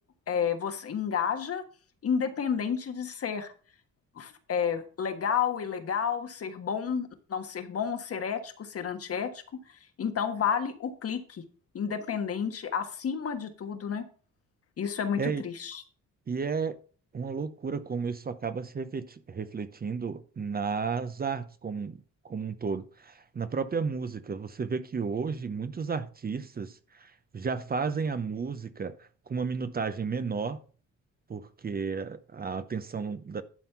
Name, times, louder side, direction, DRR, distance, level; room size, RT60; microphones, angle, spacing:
voice 1, 0.3-1.6 2.0-3.5 4.1-9.4 9.7-11.4 11.7-14.1 14.8-15.8, left 7 dB, 50° left, 1.4 m, -31 dB
voice 2, 16.3-16.8 17.1-30.6 31.3-33.4, right 5 dB, 30° right, 0.8 m, -33 dB
11.0 x 4.3 x 5.8 m
cardioid pair, 90°, 30 cm